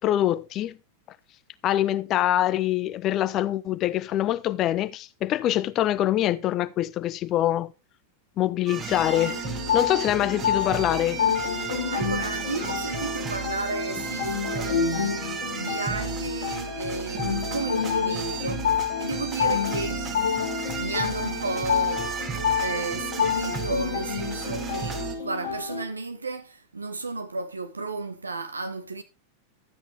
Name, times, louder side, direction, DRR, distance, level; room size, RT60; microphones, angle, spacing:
voice 1, 0.0-0.8 1.6-7.7 8.4-9.4 9.7-11.2, left 13 dB, 35° left, 0.6 m, -24 dB
sound 1, 8.7-25.2, right 7 dB, 25° right, 1.9 m, -34 dB
sound 2, 9.1-25.8, left 7 dB, 60° left, 2.2 m, -29 dB
voice 2, 11.9-20.1 20.7-29.0, right 3 dB, 80° right, 1.5 m, -33 dB
12.5 x 8.9 x 3.4 m
figure-of-eight pair, 90°, 0 cm